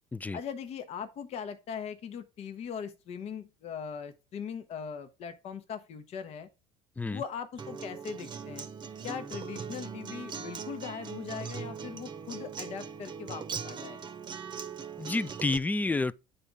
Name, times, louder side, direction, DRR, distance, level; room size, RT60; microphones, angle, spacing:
voice 1, 0.3-6.5 7.1-8.7 9.0-14.0, left 7 dB, 50° left, 0.9 m, -40 dB
Acoustic guitar, 7.6-15.6, right 6 dB, 35° right, 0.8 m, -40 dB
voice 2, 15.0-16.2, left 3 dB, 10° left, 0.4 m, -29 dB
9.8 x 4.1 x 3.5 m
hypercardioid pair, 80°, 14 cm